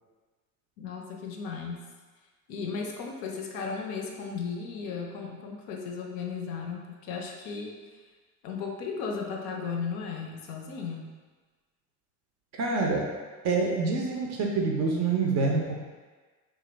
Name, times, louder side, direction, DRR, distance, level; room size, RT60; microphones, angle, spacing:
voice 1, 0.8-1.9 2.5-8.0 8.4-11.1, left 5 dB, 50° left, 1 dB, 0.5 m, -35 dB
voice 2, 12.5-13.1 13.4-15.8, right 4 dB, 35° right, 0 dB, 0.5 m, -26 dB
3.0 x 2.2 x 3.3 m, 1.4 s
hypercardioid pair, 75°, 47 cm